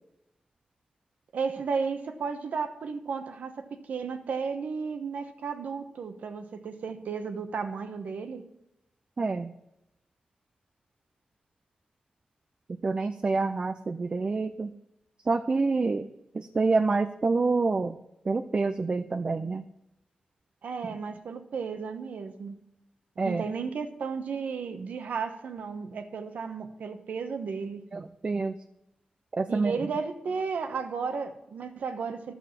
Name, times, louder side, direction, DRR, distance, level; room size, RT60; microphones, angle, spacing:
voice 1, 1.3-8.4 20.6-22.6 23.2-27.8 29.5-32.3, right 5 dB, 85° right, 8 dB, 1.0 m, -34 dB
voice 2, 9.2-9.5 12.8-14.7 15.2-16.1 16.3-18.0 18.2-19.6 23.2-23.4 27.9-28.6 29.3-29.8, right 3 dB, 40° right, 9 dB, 0.5 m, -27 dB
11.5 x 7.0 x 5.8 m, 0.86 s
wide cardioid pair, 105°, 3 cm